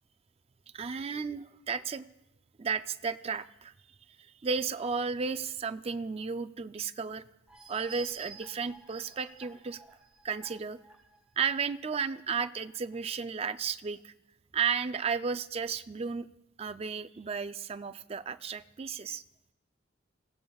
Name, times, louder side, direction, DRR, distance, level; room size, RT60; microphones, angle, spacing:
voice 1, 0.7-2.0 2.6-3.7 4.2-7.2 7.7-9.9 10.2-10.8 11.4-14.1 14.5-16.3 16.6-19.2, right 5 dB, 30° right, 10 dB, 0.4 m, -33 dB
sound 1, 7.5-11.9 12.4-12.5 12.9-13.0, right 4 dB, 5° right, 2.2 m, -51 dB
26.5 x 16.0 x 2.3 m, 0.87 s
head